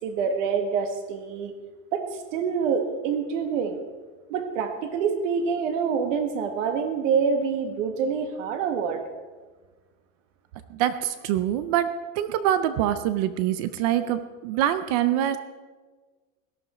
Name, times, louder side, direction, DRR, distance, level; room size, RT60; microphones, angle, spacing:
voice 1, 0.0-1.5 1.9-2.0 2.3-3.8 4.3-9.0, right 6 dB, 65° right, 6 dB, 1.5 m, -26 dB
voice 2, 10.7-11.9 12.2-15.4, right 11 dB, 30° right, 12 dB, 0.4 m, -24 dB
17.5 x 11.5 x 4.3 m, 1.3 s
supercardioid pair, 170°, 41 cm